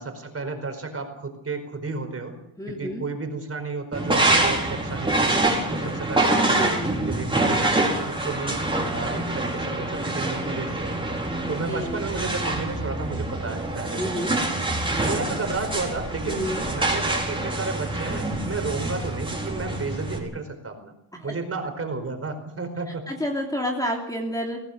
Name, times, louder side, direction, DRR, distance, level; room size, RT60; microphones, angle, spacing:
voice 1, 0.0-2.4 2.7-5.4 5.7-8.6 8.9-10.9 11.5-14.3 15.0-20.9 21.2-23.1, right 3 dB, 30° right, 6 dB, 4.8 m, -32 dB
voice 2, 2.6-3.0 6.5-7.0 11.4-12.0 14.0-14.4 16.2-16.7 20.1-20.3 23.1-24.6, equal, 5° left, 0 dB, 2.9 m, -30 dB
sound 1, 3.9-20.2, right 2 dB, 10° right, 4.7 m, -26 dB
24.5 x 17.5 x 6.7 m, 0.80 s
cardioid pair, 150°, 49 cm